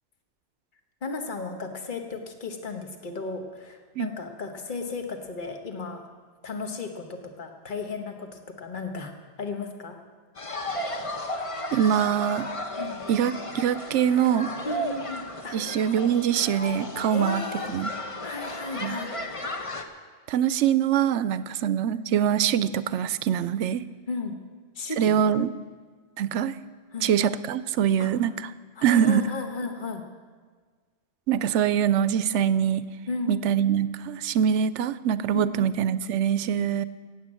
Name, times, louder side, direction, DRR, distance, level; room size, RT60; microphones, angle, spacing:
voice 1, 1.0-6.1 6.4-9.1 9.4-10.0 10.4-10.6 12.8-13.0 14.6-15.6 17.1-17.7 18.2-19.1 24.1-24.4 24.7-25.2 26.9-27.1 28.0-28.1 28.8-30.0 33.1-33.4 35.3-35.6, left 3 dB, 45° left, 5 dB, 1.4 m, -34 dB
sound 1, 10.4-19.8, left 1 dB, 30° left, 1.0 m, -34 dB
voice 2, 11.7-12.5 13.1-14.5 15.5-17.4 17.7-17.9 18.8-19.0 20.3-23.9 25.0-25.5 26.2-26.5 27.0-28.3 28.8-29.3 31.3-32.8 33.3-36.8, right 9 dB, 85° right, 15 dB, 0.9 m, -24 dB
16.0 x 8.9 x 7.6 m, 1.5 s
omnidirectional pair, 1.2 m